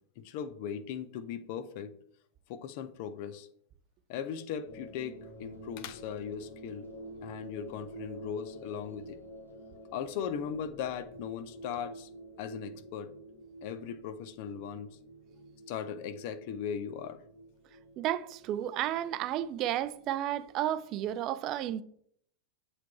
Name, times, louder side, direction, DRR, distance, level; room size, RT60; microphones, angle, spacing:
voice 1, 0.2-1.9 2.5-3.5 4.1-6.9 7.2-9.2 9.9-12.1 12.4-13.1 13.6-14.9 15.7-17.2, left 8 dB, 45° left, 0.6 m, -38 dB
sound 1, 4.6-21.1, right 1 dB, 80° left, 1.6 m, -49 dB
voice 2, 18.0-21.8, right 12 dB, 35° right, 0.4 m, -32 dB
7.4 x 3.4 x 4.1 m
figure-of-eight pair, 90°, 0 cm